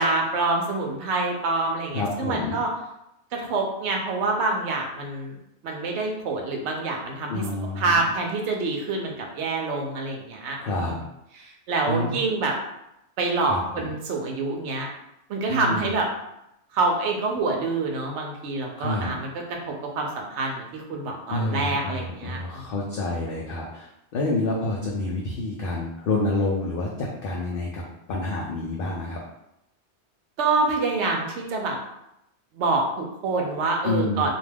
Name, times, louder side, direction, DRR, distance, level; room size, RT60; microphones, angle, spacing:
voice 1, 0.0-2.7 3.3-5.4 5.6-7.4 7.8-10.6 11.3-12.5 13.2-14.9 15.3-16.1 16.7-22.7 30.4-31.8 32.5-34.3, right 3 dB, 75° right, 1 dB, 0.9 m, -26 dB
voice 2, 1.9-2.6 7.3-8.0 10.6-11.0 11.9-12.2 13.5-13.9 15.5-15.9 18.8-19.1 21.3-27.8 28.1-29.2 33.8-34.3, left 2 dB, 60° left, -4 dB, 0.6 m, -28 dB
2.4 x 2.2 x 3.3 m, 0.83 s
omnidirectional pair, 1.2 m